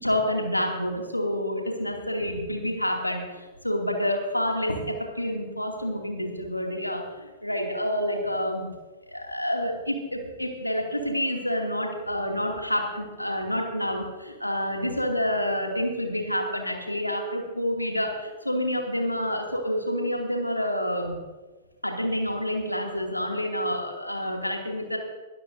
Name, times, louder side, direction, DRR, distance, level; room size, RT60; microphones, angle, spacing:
voice 1, 0.0-8.7 9.1-21.1 21.8-25.0, equal, 90° left, 1 dB, 2.5 m, -28 dB
22.5 x 12.5 x 2.7 m, 1.2 s
figure-of-eight pair, 105°, 0 cm